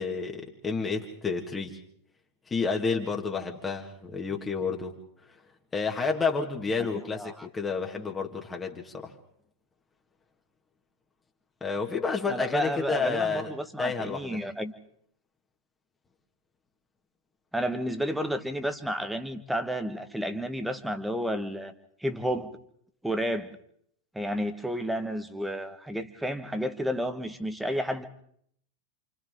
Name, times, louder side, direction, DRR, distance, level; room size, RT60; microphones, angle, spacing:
voice 1, 0.0-1.8 2.5-4.9 5.7-9.1 11.6-13.5 13.8-14.4, left 4 dB, 15° left, 1 dB, 2.0 m, -30 dB
voice 2, 6.9-7.5 12.3-14.7 17.5-21.7 22.0-22.5 23.0-23.6 24.1-28.0, equal, 5° right, 10 dB, 1.5 m, -31 dB
29.0 x 28.0 x 3.8 m, 0.67 s
figure-of-eight pair, 90°, 0 cm